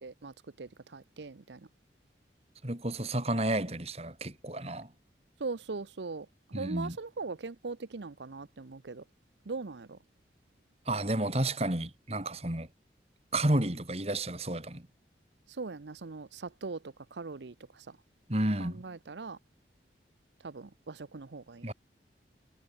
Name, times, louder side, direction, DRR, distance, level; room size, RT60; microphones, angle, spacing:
voice 1, 0.0-1.6 5.4-9.0 9.5-10.0 15.5-16.8 17.1-17.9 18.6-19.4 20.4-21.7, right 4 dB, 80° right, 0.7 m, -40 dB
voice 2, 2.6-4.9 6.5-7.0 10.9-12.7 13.3-14.8 18.3-18.8 21.6-21.7, right 1 dB, 35° right, 3.4 m, -31 dB
head